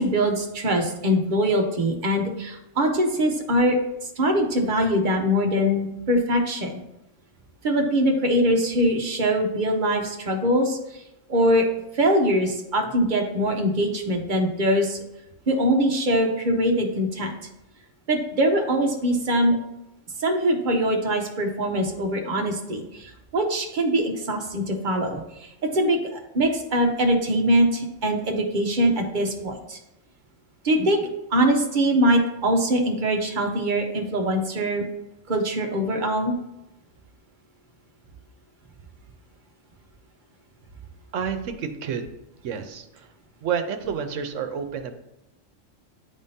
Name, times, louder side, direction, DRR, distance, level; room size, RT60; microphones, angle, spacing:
voice 1, 0.0-3.8 4.2-6.8 7.6-11.0 11.3-11.7 11.9-15.0 15.5-17.3 18.1-19.6 20.2-29.8 30.6-34.8 35.3-36.3, equal, 45° right, 3 dB, 0.9 m, -23 dB
voice 2, 41.1-42.1 42.4-43.1 43.4-44.9, right 7 dB, 80° right, 7 dB, 1.0 m, -29 dB
9.7 x 3.6 x 2.7 m, 0.89 s
omnidirectional pair, 1.3 m